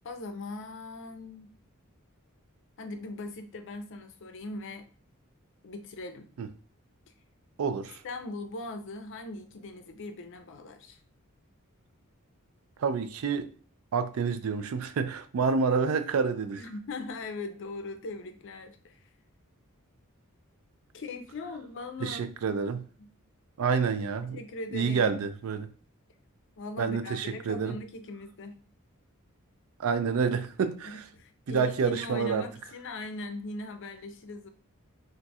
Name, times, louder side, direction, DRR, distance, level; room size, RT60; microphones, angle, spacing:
voice 1, 0.0-1.5 2.8-4.9 5.6-6.3 8.0-11.0 16.6-19.1 20.9-22.2 23.0-23.1 24.2-25.3 26.6-28.6 30.8-34.5, left 2 dB, 60° left, 0.5 m, -40 dB
voice 2, 7.6-8.0 12.8-13.5 13.9-16.6 22.0-22.8 23.6-24.4 24.7-25.7 26.8-27.8 29.8-31.0 31.5-32.5, right 5 dB, 70° right, 0.4 m, -28 dB
2.5 x 2.3 x 4.0 m
head